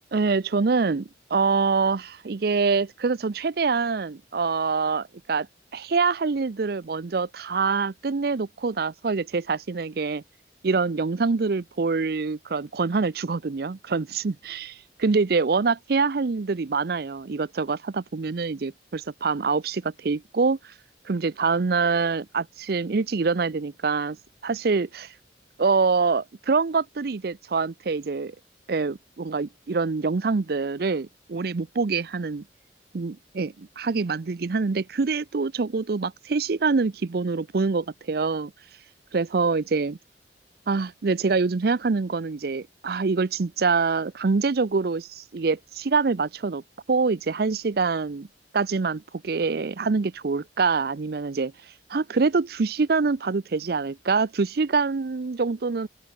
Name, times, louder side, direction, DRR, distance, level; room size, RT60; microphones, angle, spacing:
voice 1, 0.1-5.5 5.7-10.2 10.6-20.7 21.0-24.2 24.4-25.1 25.6-28.3 28.7-32.4 32.9-38.5 39.1-40.0 40.7-46.6 46.9-48.3 48.5-51.5 51.9-55.9, right 4 dB, 60° right, 0.5 m, -25 dB
open air
head